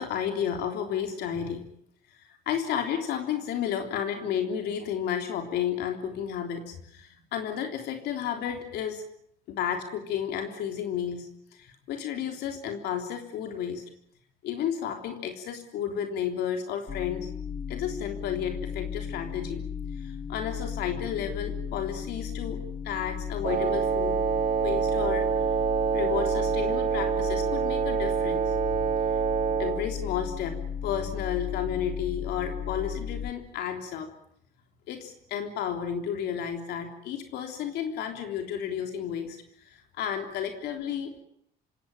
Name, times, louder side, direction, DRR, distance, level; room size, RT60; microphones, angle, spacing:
voice 1, 0.0-1.7 2.1-9.0 9.5-13.8 14.4-17.3 17.7-19.7 20.0-24.2 24.6-25.3 25.9-28.6 29.6-34.1 34.9-41.2, left 8 dB, 80° left, 5 dB, 3.5 m, -32 dB
sound 1, 16.9-33.3, left 7 dB, 30° left, 1.3 m, -35 dB
Wind instrument woodwind instrument, 23.4-29.9, right 8 dB, 50° right, 3.0 m, -26 dB
27.0 x 17.5 x 8.8 m, 0.71 s
cardioid pair, 110°, 17 cm